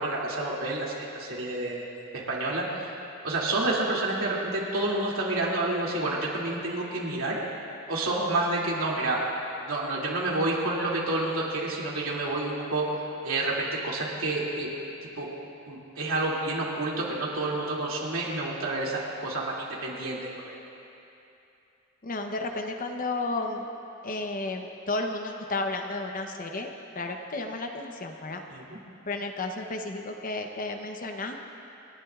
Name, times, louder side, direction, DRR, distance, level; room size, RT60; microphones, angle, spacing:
voice 1, 0.0-1.8 2.1-2.6 3.2-7.4 7.9-9.2 9.7-12.9 13.2-14.7 15.2-15.3 15.7-20.2 28.5-28.6, right 2 dB, 80° right, -4 dB, 2.6 m, -29 dB
voice 2, 22.0-23.7 24.0-26.7 26.9-28.4 29.1-31.4, left 2 dB, 40° left, 4 dB, 0.8 m, -32 dB
28.5 x 11.0 x 2.4 m, 2.8 s
head